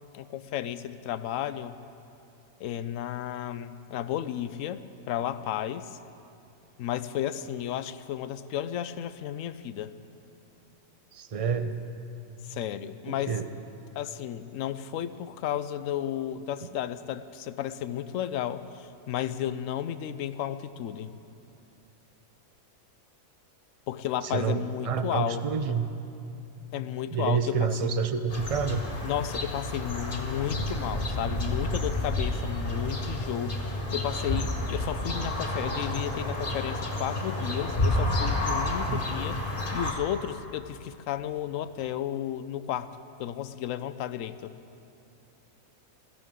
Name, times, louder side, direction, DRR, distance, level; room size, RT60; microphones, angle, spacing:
voice 1, 0.1-1.8 2.6-6.0 6.8-9.9 12.5-13.3 14.0-21.1 23.9-25.8 26.7-28.0 29.0-39.4 39.7-42.9 43.2-44.5, left 10 dB, 75° left, 13 dB, 0.9 m, -33 dB
voice 2, 11.1-11.8 13.1-13.4 24.2-25.9 27.1-28.8 38.9-39.2, right 6 dB, 45° right, 9 dB, 0.5 m, -28 dB
sound 1, 28.3-39.9, left 1 dB, 40° left, 1.6 m, -30 dB
21.0 x 15.0 x 3.7 m, 2.7 s
omnidirectional pair, 1.4 m